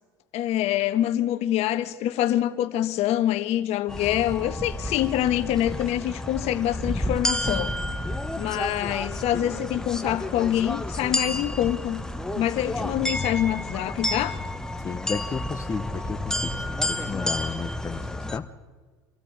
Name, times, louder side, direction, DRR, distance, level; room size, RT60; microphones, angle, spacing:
voice 1, 0.3-7.7 8.4-12.0 12.3-14.4, left 12 dB, 60° left, 1.5 m, -25 dB
Baltic market place, 3.9-18.4, left 1 dB, 5° left, 1.4 m, -30 dB
voice 2, 14.8-18.0 18.3-18.5, left 5 dB, 25° left, 1.0 m, -33 dB
26.0 x 13.5 x 8.9 m
hypercardioid pair, 90°, 12 cm